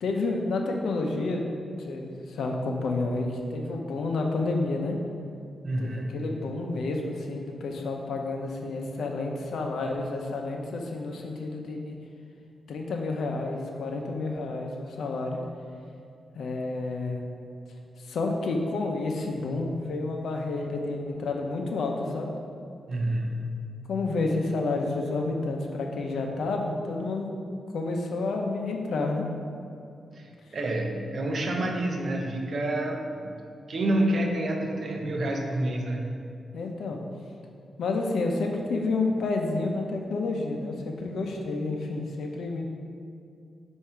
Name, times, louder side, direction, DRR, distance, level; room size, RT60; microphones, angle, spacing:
voice 1, 0.0-5.0 5.8-11.9 12.7-15.4 16.3-17.3 18.0-22.3 23.9-27.3 27.7-29.3 36.5-37.0 37.8-42.7, left 3 dB, 90° left, 2 dB, 0.7 m, -30 dB
voice 2, 5.6-6.2 22.9-23.7 30.1-33.3 33.7-36.1, right 1 dB, 55° right, 2 dB, 0.8 m, -28 dB
8.0 x 2.7 x 5.7 m, 2.4 s
cardioid pair, 100°, 0 cm